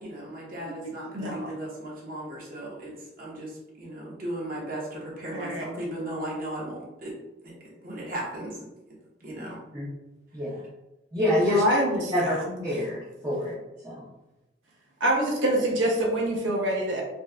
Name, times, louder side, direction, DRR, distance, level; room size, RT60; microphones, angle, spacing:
voice 1, 0.0-2.9 3.2-3.5 3.8-7.1 7.4-7.5 7.8-8.7 9.2-9.6, right 1 dB, 50° right, -4 dB, 1.0 m, -36 dB
voice 2, 0.6-1.5 5.3-5.9 11.4-12.5 15.0-17.0, right 1 dB, 85° right, -1 dB, 0.8 m, -26 dB
voice 3, 11.1-11.6 12.1-12.4 12.6-14.1, left 1 dB, 20° right, -8 dB, 0.5 m, -26 dB
4.2 x 2.2 x 2.3 m, 0.97 s
head